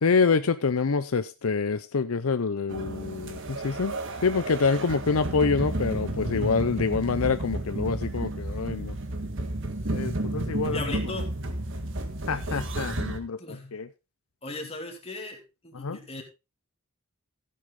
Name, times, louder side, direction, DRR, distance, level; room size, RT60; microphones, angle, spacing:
voice 1, 0.0-9.0 9.9-10.9 12.3-13.4 13.7-13.9 15.7-16.0, left 4 dB, 75° left, 0.6 m, -26 dB
sound 1, 2.7-13.2, right 1 dB, 60° right, 1.7 m, -32 dB
voice 2, 6.3-6.6 10.6-11.3 13.4-13.8 14.4-16.2, left 2 dB, 25° left, 2.5 m, -38 dB
15.0 x 7.9 x 3.7 m
head